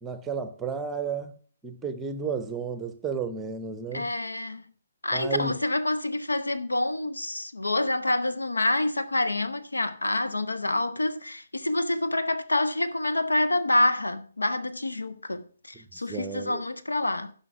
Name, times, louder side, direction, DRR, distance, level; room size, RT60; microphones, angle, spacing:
voice 1, 0.0-1.4 1.6-4.1 5.1-5.5 15.7-16.6, right 5 dB, 10° right, 0.8 m, -33 dB
voice 2, 3.9-4.6 5.0-17.3, left 2 dB, 75° left, 0.8 m, -27 dB
11.0 x 5.6 x 5.7 m
figure-of-eight pair, 135°, 0 cm